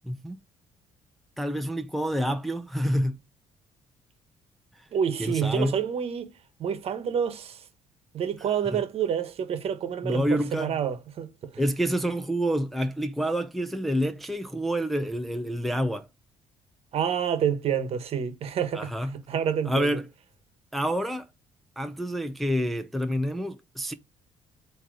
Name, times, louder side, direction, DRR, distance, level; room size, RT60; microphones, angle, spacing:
voice 1, 0.1-0.4 1.4-3.2 5.2-5.8 8.7-8.8 10.0-10.8 11.6-16.1 18.7-19.2 19.7-20.1 20.7-21.3 21.8-23.9, equal, ahead, 0.5 m, -28 dB
voice 2, 4.9-7.6 8.1-11.5 16.9-20.0, right 8 dB, 55° right, 1.1 m, -28 dB
7.8 x 2.9 x 4.7 m
cardioid pair, 135°, 12 cm